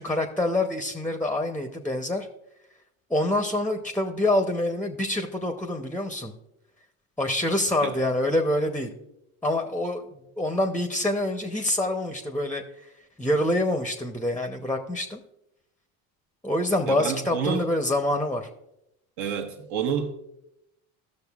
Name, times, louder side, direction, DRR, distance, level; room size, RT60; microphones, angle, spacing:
voice 1, 0.0-2.3 3.1-6.3 7.2-8.9 9.4-12.6 13.2-15.2 16.4-18.5, left 1 dB, 5° left, 0.7 m, -26 dB
voice 2, 16.9-17.7 19.2-20.1, right 7 dB, 60° right, 1.3 m, -29 dB
13.5 x 6.4 x 2.4 m
hypercardioid pair, 80°, 45 cm